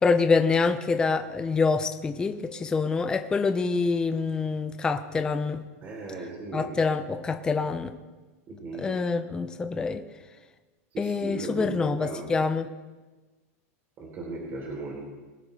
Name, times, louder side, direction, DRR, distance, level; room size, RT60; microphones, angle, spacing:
voice 1, 0.0-5.6 6.5-7.9 8.8-10.0 11.0-12.7, left 4 dB, 10° left, 7 dB, 0.5 m, -26 dB
voice 2, 5.8-6.7 8.5-8.9 10.9-12.3 14.0-15.0, right 3 dB, 25° right, -3 dB, 3.4 m, -37 dB
22.5 x 10.5 x 3.3 m, 1.2 s
supercardioid pair, 160°, 8 cm